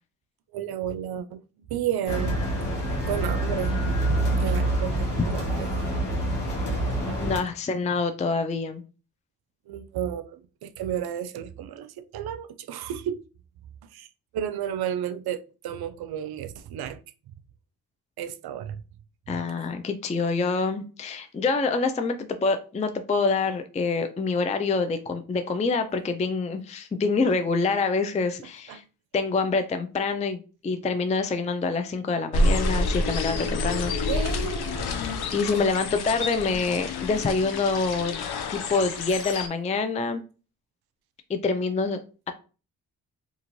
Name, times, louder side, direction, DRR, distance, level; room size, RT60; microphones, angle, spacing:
voice 1, 0.5-3.9 4.3-5.7 7.1-7.2 9.7-13.2 13.8-14.1 14.3-17.0 18.2-18.8 19.3-19.4 28.7-28.8 34.1-34.9, right 9 dB, 70° right, 0.5 m, -32 dB
sound 1, 2.1-7.4, right 1 dB, 90° left, 1.0 m, -26 dB
voice 2, 7.2-8.8 19.3-28.8 29.1-34.1 35.3-38.2 38.5-40.2 41.3-42.0, left 4 dB, 20° left, 0.4 m, -26 dB
sound 2, 32.3-39.5, left 2 dB, 70° left, 0.6 m, -28 dB
2.5 x 2.5 x 3.0 m
supercardioid pair, 45°, 40 cm